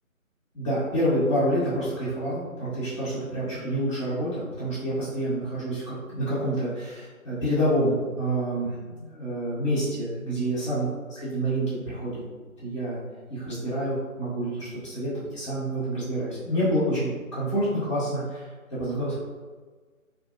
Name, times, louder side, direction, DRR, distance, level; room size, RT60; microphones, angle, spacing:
voice 1, 0.5-12.1 12.6-13.0 13.3-18.5 18.8-19.2, right 1 dB, 20° left, -14 dB, 1.0 m, -28 dB
2.5 x 2.0 x 2.7 m, 1.4 s
figure-of-eight pair, 155°, 42 cm